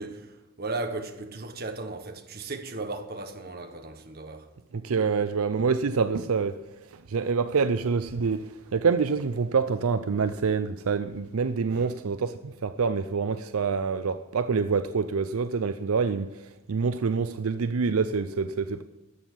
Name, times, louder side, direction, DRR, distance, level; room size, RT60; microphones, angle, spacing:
voice 1, 0.0-4.5 11.7-11.9, right 3 dB, 45° right, 1.3 m, -36 dB
voice 2, 4.7-6.6 6.9-18.8, right 5 dB, 80° right, 0.5 m, -26 dB
13.0 x 7.2 x 9.8 m
head